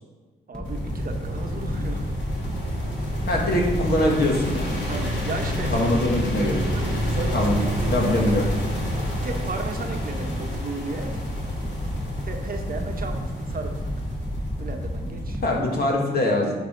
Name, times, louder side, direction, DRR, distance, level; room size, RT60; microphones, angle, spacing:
sound 1, 0.5-15.6, equal, 5° left, 1.0 m, -31 dB
voice 1, 0.5-2.1 4.9-5.9 6.7-8.4 9.1-11.2 12.2-13.8 14.6-15.7, right 3 dB, 50° right, 4 dB, 1.0 m, -35 dB
sound 2, 0.7-15.8, equal, 80° left, 2.0 m, -31 dB
voice 2, 3.3-4.8 5.7-6.6 7.3-7.6 7.9-8.4 15.4-16.5, left 1 dB, 55° left, -1 dB, 1.9 m, -23 dB
11.0 x 4.0 x 3.9 m, 1.3 s
cardioid pair, 70°, 19 cm